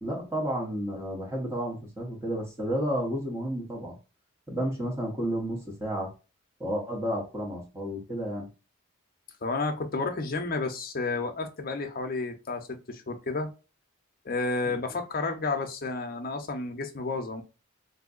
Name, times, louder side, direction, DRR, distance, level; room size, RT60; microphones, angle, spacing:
voice 1, 0.0-4.0 4.5-6.1 6.6-8.5 14.7-14.8, equal, 10° right, 0.9 m, -31 dB
voice 2, 9.4-13.5 14.2-17.4, left 3 dB, 45° left, 0.6 m, -31 dB
3.6 x 2.7 x 2.4 m
head